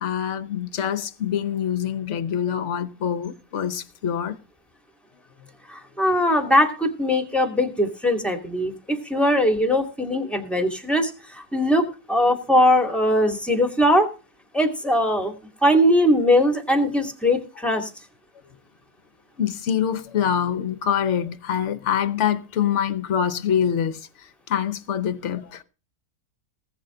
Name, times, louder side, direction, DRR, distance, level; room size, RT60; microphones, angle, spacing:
voice 1, 0.0-4.4 5.4-5.5 19.4-25.6, left 8 dB, 50° left, 1.2 m, -25 dB
voice 2, 5.7-14.1 14.5-15.3 15.6-17.9, equal, ahead, 2.5 m, -20 dB
19.0 x 8.1 x 3.9 m
omnidirectional pair, 1.7 m